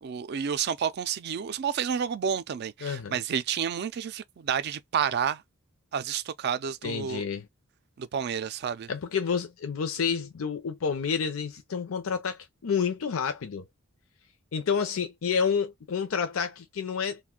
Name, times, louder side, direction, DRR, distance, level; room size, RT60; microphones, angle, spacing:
voice 1, 0.0-5.4 5.9-7.2 8.0-8.9, right 7 dB, 50° right, 0.3 m, -30 dB
voice 2, 2.8-3.2 6.8-7.5 8.9-13.6 14.5-17.2, left 6 dB, 75° left, 0.5 m, -29 dB
2.5 x 2.2 x 3.6 m
head